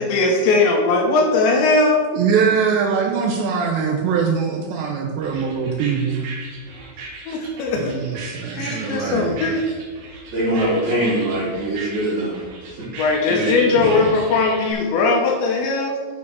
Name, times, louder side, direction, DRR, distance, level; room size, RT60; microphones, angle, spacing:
voice 1, 0.0-2.0 7.3-7.9 8.5-9.6 13.0-16.0, left 3 dB, 75° left, 1 dB, 2.9 m, -19 dB
voice 2, 2.1-6.3 7.7-9.4 13.8-14.1, right 6 dB, 80° right, 2 dB, 2.5 m, -22 dB
sound 1, 5.2-14.7, right 3 dB, 65° right, 2.3 m, -38 dB
voice 3, 10.3-13.8, right 1 dB, 40° right, -13 dB, 3.9 m, -23 dB
8.5 x 8.3 x 4.7 m, 1.4 s
omnidirectional pair, 6.0 m